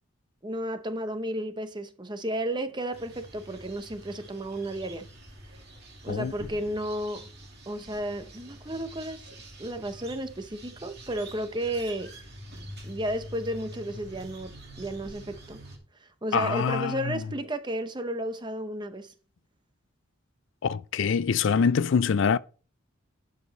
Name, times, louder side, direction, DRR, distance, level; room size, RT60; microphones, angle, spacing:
voice 1, 0.4-5.1 6.0-7.3 7.7-9.2 9.6-12.1 12.8-15.6 16.0-19.1, right 1 dB, 20° right, 0.8 m, -33 dB
sound 1, 2.9-15.8, right 1 dB, 50° right, 2.2 m, -46 dB
voice 2, 16.3-17.1 20.6-22.4, left 6 dB, 60° left, 0.4 m, -24 dB
11.5 x 5.0 x 4.1 m
head